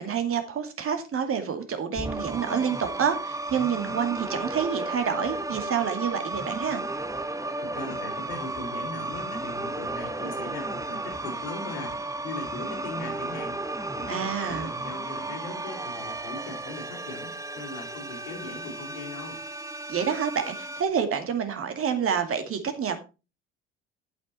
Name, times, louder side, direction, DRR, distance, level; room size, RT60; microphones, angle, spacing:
voice 1, 0.0-6.8 14.1-14.7 19.9-23.0, right 7 dB, 45° right, 7 dB, 2.3 m, -28 dB
sound 1, 1.9-20.8, right 2 dB, 10° right, 0.9 m, -34 dB
voice 2, 7.6-13.6 14.0-19.4, left 3 dB, 80° left, -4 dB, 3.9 m, -39 dB
9.1 x 8.2 x 4.2 m, 0.30 s
hypercardioid pair, 65°, 32 cm